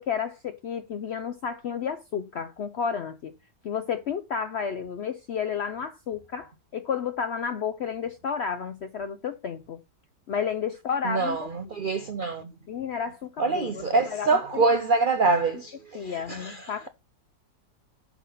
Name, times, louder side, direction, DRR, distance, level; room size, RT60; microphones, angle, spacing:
voice 1, 0.0-3.3 3.6-9.8 10.3-11.5 11.8-11.9 12.7-14.7 15.9-16.9, left 7 dB, 70° left, 0.6 m, -31 dB
voice 2, 11.0-12.5 13.4-16.9, right 3 dB, 80° right, 0.4 m, -25 dB
5.9 x 5.9 x 5.4 m
omnidirectional pair, 1.7 m